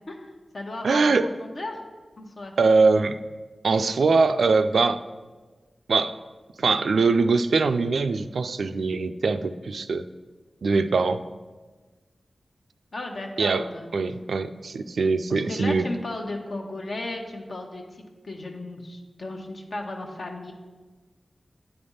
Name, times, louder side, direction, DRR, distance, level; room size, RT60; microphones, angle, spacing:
voice 1, 0.1-1.1 1.4-1.8 2.2-2.5 12.9-13.9 15.3-17.8 18.2-20.5, left 2 dB, 65° left, 2 dB, 1.0 m, -35 dB
voice 2, 0.8-1.3 2.6-3.2 3.6-5.0 5.9-6.2 6.6-10.0 10.6-11.2 13.4-13.6 13.9-15.8, right 4 dB, 80° right, 10 dB, 0.3 m, -22 dB
9.1 x 3.4 x 5.4 m, 1.3 s
cardioid pair, 45°, 0 cm